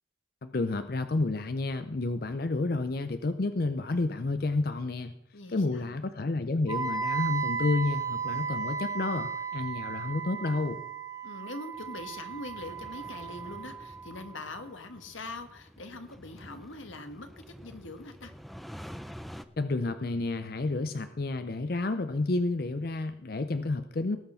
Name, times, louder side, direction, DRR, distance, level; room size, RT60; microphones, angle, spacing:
voice 1, 0.4-5.1 5.5-10.8 19.6-24.2, left 2 dB, 50° left, 10 dB, 0.5 m, -30 dB
voice 2, 5.3-5.9 11.2-18.3, left 2 dB, 90° left, 8 dB, 1.5 m, -43 dB
Wind instrument woodwind instrument, 6.7-14.6, right 6 dB, 15° right, 1.0 m, -35 dB
sound 1, 11.7-19.5, equal, ahead, 0.4 m, -48 dB
19.0 x 6.5 x 5.6 m, 0.84 s
head